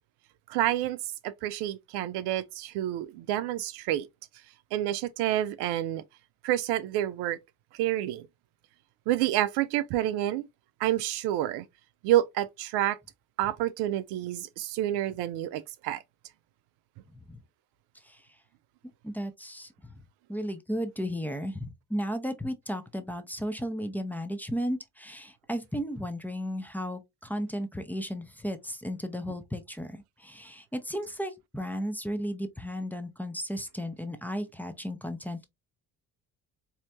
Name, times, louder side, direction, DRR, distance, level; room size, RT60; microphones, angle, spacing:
voice 1, 0.5-1.0 1.2-4.1 4.7-6.0 6.4-7.4 7.7-8.3 9.1-10.5 10.8-11.6 12.0-13.0 13.4-16.0, right 13 dB, 60° right, 0.5 m, -28 dB
voice 2, 19.0-19.9 20.3-35.4, equal, 5° left, 0.7 m, -34 dB
4.2 x 2.8 x 2.5 m
figure-of-eight pair, 45°, 46 cm